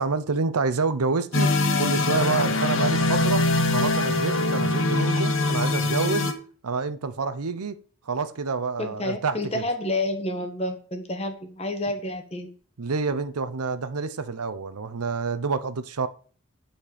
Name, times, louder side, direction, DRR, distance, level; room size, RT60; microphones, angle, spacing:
voice 1, 0.0-6.3 6.6-7.8 8.1-9.6 12.8-16.1, right 4 dB, 90° right, 0.7 m, -28 dB
sound 1, 1.3-6.3, left 2 dB, 60° left, 1.0 m, -23 dB
voice 2, 8.8-12.5, left 1 dB, 25° left, 1.3 m, -29 dB
10.0 x 4.4 x 5.0 m
head